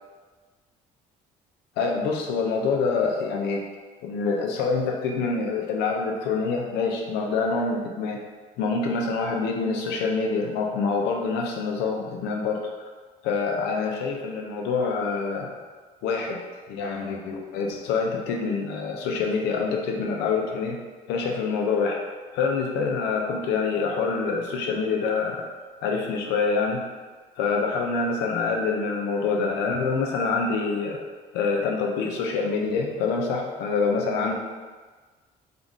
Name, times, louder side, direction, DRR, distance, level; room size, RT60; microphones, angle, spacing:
voice 1, 1.8-3.7 4.0-8.2 8.6-12.6 13.2-15.5 16.0-16.4 16.7-20.8 21.1-22.0 22.3-25.5 25.8-26.8 27.4-31.0 31.3-34.3, left 4 dB, 90° left, 1 dB, 0.6 m, -26 dB
3.8 x 2.5 x 3.6 m, 1.4 s
cardioid pair, 110°, 17 cm